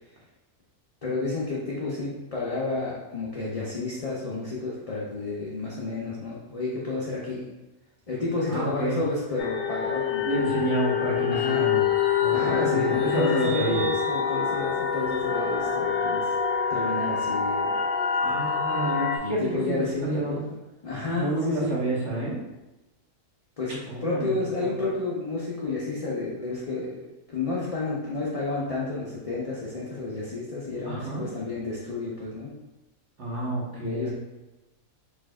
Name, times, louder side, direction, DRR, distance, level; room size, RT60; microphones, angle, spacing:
voice 1, 1.0-7.4 8.1-10.6 11.3-11.8 12.3-16.3 16.7-17.7 19.2-20.5 20.8-21.7 23.6-32.5 33.8-34.1, left 3 dB, 35° left, -6 dB, 0.6 m, -31 dB
voice 2, 8.5-9.0 10.2-11.8 12.2-13.8 18.2-20.4 21.1-22.4 23.9-24.3 24.6-24.7 30.8-31.3 33.2-34.1, right 2 dB, 55° right, -5 dB, 1.5 m, -29 dB
sound 1, 9.4-19.2, left 7 dB, 70° left, 1.0 m, -26 dB
4.7 x 3.5 x 2.4 m, 1.0 s
omnidirectional pair, 1.5 m